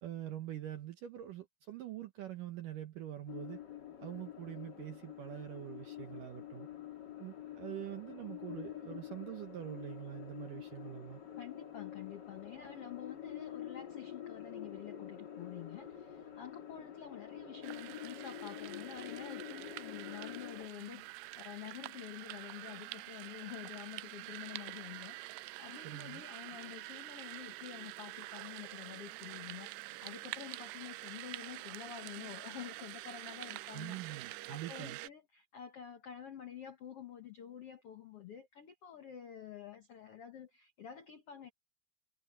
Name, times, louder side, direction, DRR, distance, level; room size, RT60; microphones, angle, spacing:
voice 1, 0.0-3.6 4.0-6.7 7.2-11.2 25.8-26.2 33.7-35.0, right 12 dB, 65° right, 2.3 m, -44 dB
sound 1, 3.3-20.7, left 10 dB, 35° left, 2.2 m, -47 dB
voice 2, 11.4-41.5, left 10 dB, 80° left, 1.3 m, -49 dB
sound 2, 17.6-35.1, right 21 dB, 90° right, 2.8 m, -47 dB
omnidirectional pair, 4.8 m